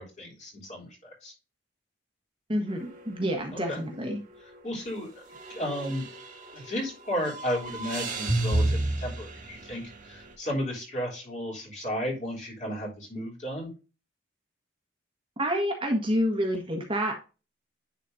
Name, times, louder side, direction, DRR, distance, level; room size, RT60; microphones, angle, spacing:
voice 1, 0.0-1.3 3.5-3.8 4.6-5.2 5.5-6.0 6.5-13.7, equal, 40° left, -2 dB, 3.4 m, -34 dB
voice 2, 2.5-4.2 6.6-6.7 15.4-17.2, equal, 30° right, 2 dB, 1.4 m, -28 dB
sound 1, 2.7-3.1 3.4-3.5 5.3-6.8 7.1-10.2, right 2 dB, 45° right, 1.7 m, -30 dB
10.5 x 4.2 x 2.7 m, 0.31 s
head